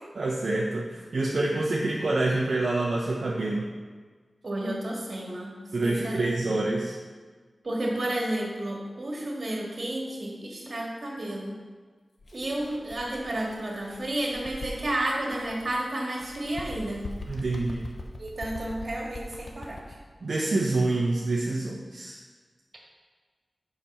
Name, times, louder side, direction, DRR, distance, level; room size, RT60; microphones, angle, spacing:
voice 1, 0.1-3.7 5.7-7.0 17.3-17.9 20.2-22.2, right 2 dB, 65° right, -3 dB, 0.9 m, -27 dB
voice 2, 4.4-5.5 5.8-6.2 6.4-6.6 7.6-11.5 12.3-17.0 18.2-19.8, right 1 dB, 50° right, -2 dB, 1.9 m, -31 dB
Bird, 12.2-15.8 16.1-20.0, left 2 dB, 50° left, 0.9 m, -42 dB
7.2 x 5.2 x 5.5 m, 1.5 s
wide cardioid pair, 90°, 0 cm